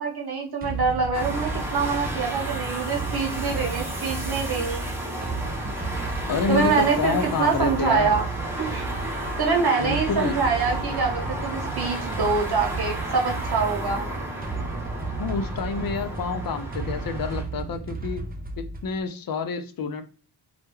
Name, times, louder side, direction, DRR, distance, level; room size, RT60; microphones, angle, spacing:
voice 1, 0.0-4.8 6.5-8.2 8.6-8.9 9.4-14.1, right 5 dB, 50° right, 1 dB, 0.9 m, -25 dB
sound 1, 0.6-19.0, right 3 dB, 20° right, 0.3 m, -34 dB
sound 2, 1.1-17.4, right 1 dB, 5° right, 0.9 m, -33 dB
voice 2, 6.3-8.2 9.6-10.4 15.2-18.3 18.6-20.0, left 4 dB, 45° left, 8 dB, 0.5 m, -28 dB
2.2 x 2.0 x 3.1 m, 0.39 s
cardioid pair, 50°, 49 cm